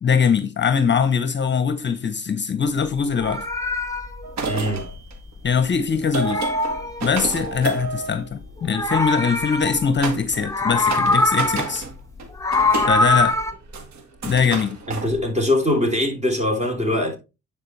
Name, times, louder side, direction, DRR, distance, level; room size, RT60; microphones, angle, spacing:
voice 1, 0.0-3.4 5.4-6.4 7.0-11.9 12.9-13.4 14.2-14.8, left 6 dB, 40° left, 0.8 m, -22 dB
Meow, 3.0-5.7 5.9-7.6 8.5-10.1 10.4-11.8 12.2-13.5, left 2 dB, 10° left, 1.2 m, -23 dB
sound 1, 4.2-8.9 10.0-10.5 10.7-11.9 12.2-15.8, right 4 dB, 65° right, 1.9 m, -31 dB
voice 2, 4.5-4.8 14.9-17.2, left 1 dB, 25° right, 3.1 m, -22 dB
9.7 x 4.8 x 3.2 m
cardioid pair, 90°, 30 cm